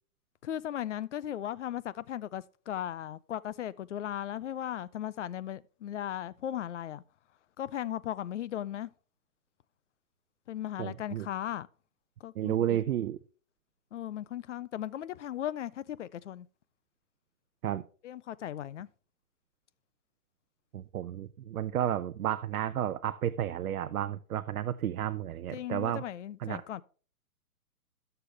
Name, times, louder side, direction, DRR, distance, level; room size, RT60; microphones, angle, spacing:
voice 1, 0.4-7.0 7.6-8.9 10.5-11.7 12.2-12.8 13.9-16.5 18.0-18.9 25.5-26.8, left 11 dB, 55° left, 0.5 m, -37 dB
voice 2, 10.8-11.3 12.4-13.2 17.6-17.8 20.7-26.0 26.4-26.6, right 11 dB, 75° right, 0.6 m, -32 dB
11.5 x 6.8 x 3.3 m
hypercardioid pair, 155°, 44 cm